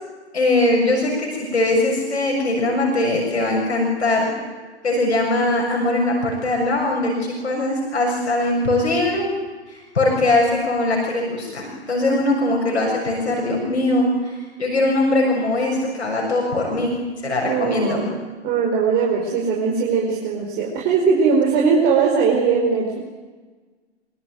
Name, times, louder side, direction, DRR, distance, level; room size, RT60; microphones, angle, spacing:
voice 1, 0.3-4.4 4.8-9.3 9.7-16.9 17.2-18.0, left 2 dB, 75° left, -1 dB, 7.0 m, -21 dB
voice 2, 17.4-18.1 18.4-23.0, right 5 dB, 30° right, -2 dB, 5.1 m, -20 dB
25.0 x 24.5 x 9.5 m, 1.3 s
figure-of-eight pair, 115°, 34 cm